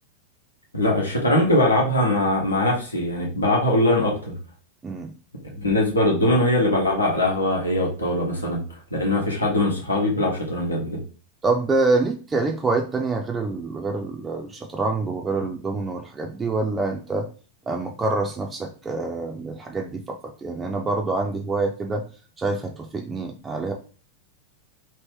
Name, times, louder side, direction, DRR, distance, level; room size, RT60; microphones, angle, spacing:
voice 1, 0.7-4.3 5.6-8.6 8.9-11.0, left 1 dB, 80° left, -2 dB, 1.1 m, -21 dB
voice 2, 11.4-17.3 17.7-22.0 22.4-23.7, right 3 dB, 15° right, 3 dB, 0.4 m, -26 dB
2.9 x 2.7 x 3.5 m, 0.37 s
figure-of-eight pair, 90°, 0 cm